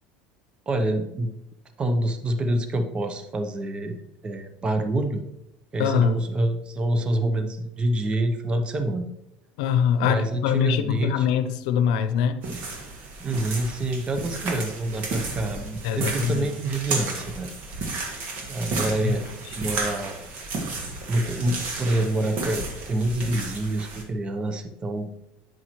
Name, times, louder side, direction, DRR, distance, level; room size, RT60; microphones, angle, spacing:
voice 1, 0.7-1.3 1.8-5.2 5.7-9.1 10.0-11.3 13.2-17.5 18.5-19.3 19.6-20.2 21.1-25.1, right 1 dB, 25° right, 7 dB, 0.8 m, -27 dB
voice 2, 5.8-6.2 9.6-12.4 15.8-16.5 18.8-19.3, left 8 dB, 80° left, 10 dB, 0.7 m, -23 dB
sound 1, 12.4-24.0, right 3 dB, 55° right, 1.5 m, -33 dB
9.1 x 5.6 x 3.1 m, 0.85 s
supercardioid pair, 110°, 4 cm